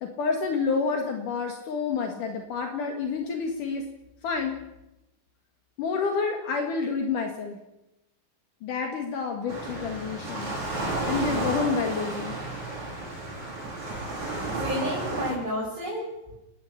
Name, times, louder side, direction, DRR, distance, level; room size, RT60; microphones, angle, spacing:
voice 1, 0.0-3.8 4.2-4.6 5.8-7.6 8.6-10.6 11.1-12.4, left 5 dB, 70° left, 3 dB, 3.3 m, -29 dB
Waves surf, 9.5-15.3, right 2 dB, 55° right, 7.1 m, -32 dB
voice 2, 14.6-16.3, equal, 15° right, -5 dB, 5.6 m, -31 dB
30.0 x 10.0 x 8.6 m, 0.91 s
omnidirectional pair, 3.9 m